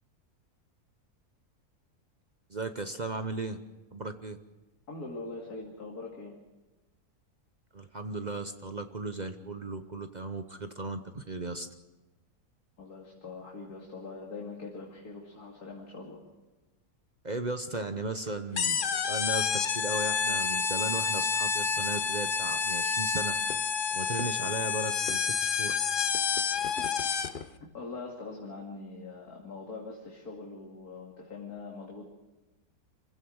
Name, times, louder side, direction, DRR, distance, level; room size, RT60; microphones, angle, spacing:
voice 1, 2.5-3.6 3.9-4.4 7.7-11.7 17.2-18.8 19.1-23.3 23.9-25.8, right 3 dB, 35° right, 8 dB, 0.8 m, -36 dB
voice 2, 4.9-6.4 12.8-16.2 26.6-26.9 27.6-32.0, left 3 dB, 75° left, -2 dB, 3.0 m, -42 dB
sound 1, 18.6-27.5, left 6 dB, 45° left, 0.8 m, -29 dB
27.0 x 16.0 x 6.4 m, 1.1 s
omnidirectional pair, 1.6 m